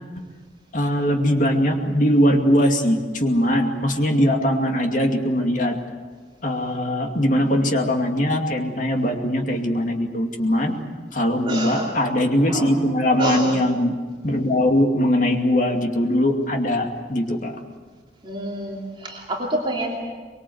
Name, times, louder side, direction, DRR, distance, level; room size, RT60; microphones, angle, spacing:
voice 1, 0.7-5.8 6.4-10.8 11.1-14.0 14.2-17.5, equal, 45° left, 3 dB, 2.5 m, -21 dB
voice 2, 11.4-12.0 12.5-12.8 13.2-13.6 18.2-20.0, right 1 dB, 30° right, -2 dB, 2.9 m, -27 dB
24.0 x 22.5 x 8.0 m, 1.5 s
head